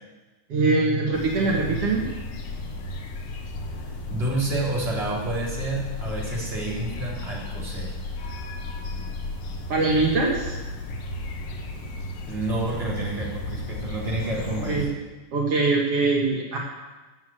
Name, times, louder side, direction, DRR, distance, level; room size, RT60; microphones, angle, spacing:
voice 1, 0.5-2.1 9.7-10.6 14.7-14.9 15.3-16.6, right 3 dB, 85° right, -2 dB, 1.3 m, -22 dB
sound 1, 1.1-14.8, left 1 dB, 65° left, 2.3 m, -34 dB
voice 2, 4.1-7.9 12.2-14.9, right 1 dB, 15° right, -5 dB, 3.1 m, -29 dB
14.0 x 7.8 x 7.8 m, 1.2 s
omnidirectional pair, 5.7 m